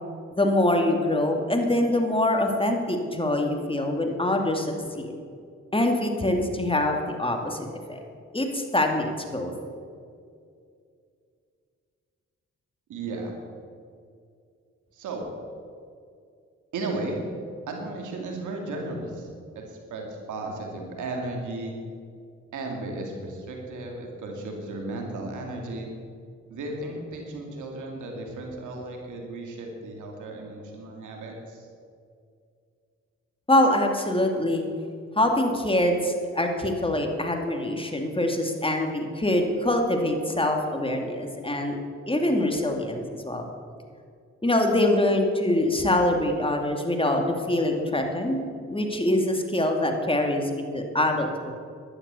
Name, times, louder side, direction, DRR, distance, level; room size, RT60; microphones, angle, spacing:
voice 1, 0.3-5.1 5.7-8.0 8.3-9.5 33.5-34.7 35.2-41.8 42.1-43.4 44.4-48.4 48.7-51.5, left 1 dB, 20° left, 3 dB, 2.5 m, -24 dB
voice 2, 12.9-13.3 14.9-15.3 16.7-17.2 17.7-21.7 22.5-25.9 26.5-31.7, right 2 dB, 90° right, 1 dB, 2.5 m, -35 dB
11.5 x 11.0 x 7.0 m, 2.3 s
supercardioid pair, 50°, 30 cm